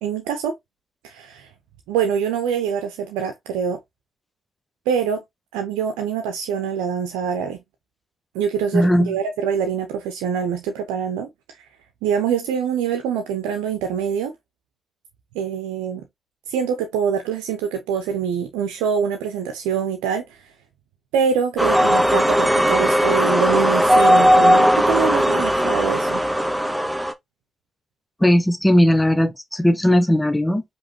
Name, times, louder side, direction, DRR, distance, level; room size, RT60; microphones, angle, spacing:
voice 1, 0.0-0.5 1.0-1.5 1.9-3.8 4.9-5.2 5.5-7.6 8.3-11.7 12.0-14.3 15.3-16.0 16.5-20.5 21.1-26.2, right 7 dB, 80° right, 0.8 m, -24 dB
voice 2, 8.7-9.1 28.2-30.6, equal, 10° left, 1.0 m, -17 dB
sound 1, 21.6-27.1, equal, 10° right, 1.0 m, -17 dB
5.0 x 3.3 x 2.9 m
hypercardioid pair, 45°, 0 cm